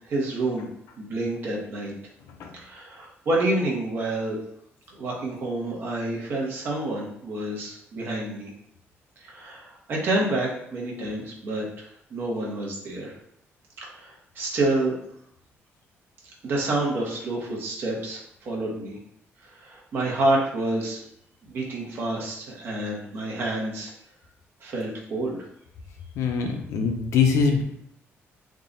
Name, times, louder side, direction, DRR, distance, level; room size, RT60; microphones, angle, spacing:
voice 1, 0.1-0.7 1.0-1.9 2.5-4.4 4.9-8.5 9.2-11.9 12.1-13.1 13.8-14.9 16.4-18.2 18.4-19.0 19.6-21.0 21.5-23.9 24.6-25.4, right 2 dB, 50° right, -3 dB, 1.0 m, -28 dB
voice 2, 26.2-27.6, left 5 dB, 80° left, 3 dB, 0.6 m, -23 dB
3.6 x 2.3 x 3.9 m, 0.73 s
cardioid pair, 170°, 5 cm